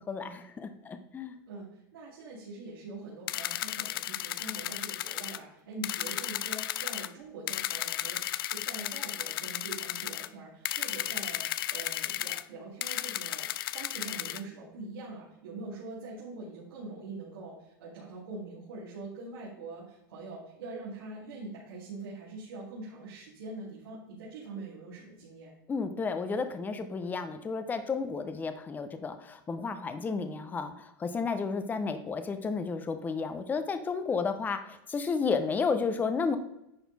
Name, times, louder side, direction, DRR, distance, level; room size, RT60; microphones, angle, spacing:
voice 1, 0.1-1.3 25.7-36.4, left 5 dB, 15° left, 9 dB, 0.6 m, -32 dB
voice 2, 1.5-8.2 8.5-25.5, right 3 dB, 90° right, -7 dB, 2.7 m, -43 dB
sound 1, 3.3-5.4 5.8-7.1 7.5-10.3 10.6-12.4 12.8-14.4, left 13 dB, 80° left, 0.4 m, -34 dB
10.5 x 4.2 x 4.1 m, 0.82 s
supercardioid pair, 130°, 12 cm